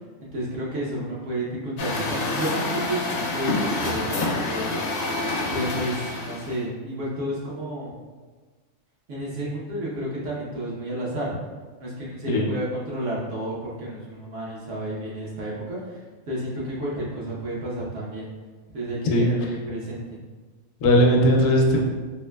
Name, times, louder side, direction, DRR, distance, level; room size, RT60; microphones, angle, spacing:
voice 1, 0.2-4.7 5.5-7.9 9.1-11.4 11.8-15.8 16.3-18.3 18.7-19.4 19.7-20.2, right 1 dB, 65° right, -6 dB, 1.2 m, -31 dB
Truck, 1.8-6.6, left 2 dB, 60° left, 0.6 m, -27 dB
voice 2, 19.0-19.5 20.8-21.8, equal, 75° left, 1 dB, 0.9 m, -18 dB
3.6 x 3.1 x 2.2 m, 1.4 s
omnidirectional pair, 1.4 m